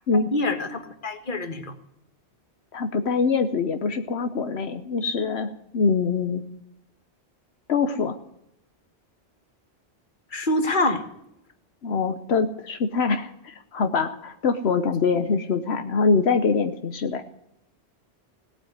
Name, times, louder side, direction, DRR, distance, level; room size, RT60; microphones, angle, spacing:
voice 1, 0.3-1.7 10.3-11.0, left 2 dB, 50° left, 7 dB, 1.7 m, -25 dB
voice 2, 2.7-6.4 7.7-8.2 11.8-17.2, left 4 dB, 80° left, 7 dB, 1.2 m, -24 dB
17.5 x 8.1 x 9.4 m, 0.78 s
omnidirectional pair, 1.1 m